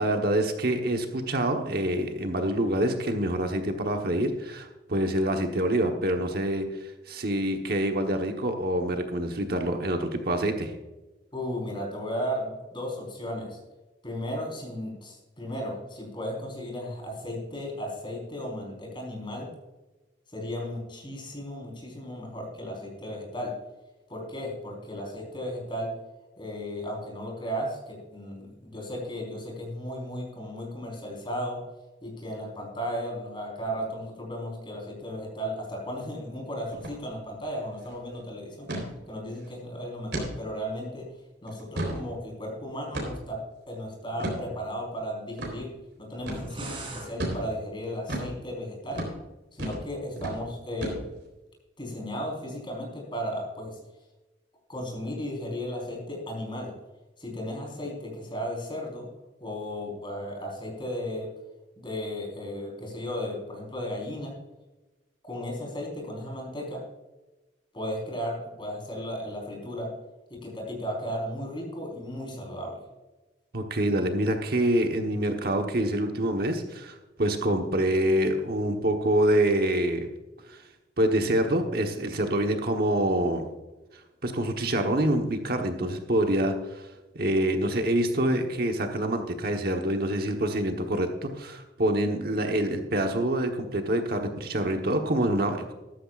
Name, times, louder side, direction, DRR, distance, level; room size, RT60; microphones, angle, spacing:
voice 1, 0.0-10.7 73.5-80.1 80.5-80.6 81.0-83.5 84.2-95.7, right 1 dB, 55° right, 4 dB, 1.2 m, -26 dB
voice 2, 11.3-13.6 14.0-19.5 20.3-23.5 24.1-25.9 26.4-31.6 32.0-38.7 39.1-41.1 41.4-43.4 43.7-45.7 46.0-49.0 49.5-51.0 51.8-53.8 54.7-56.7 57.2-59.1 59.4-61.3 61.8-64.3 65.2-66.8 67.7-69.9 70.3-72.8, equal, 25° left, -1 dB, 4.4 m, -35 dB
sound 1, 36.7-37.0 37.3-37.4 37.7-38.0 38.7-38.9 39.4-39.5 40.1-40.3 40.8-40.9 41.5-42.0 42.9-43.3 44.2-44.4 45.4-45.5 46.3-46.5 47.2-47.4 48.1-48.3 48.9-49.1 49.6-49.9 50.2-50.4 50.8-51.3, right 1 dB, 75° right, 3.9 m, -32 dB
sound 2, 46.2-47.1, right 2 dB, 30° right, 3.7 m, -39 dB
14.0 x 12.5 x 2.5 m, 1.1 s
head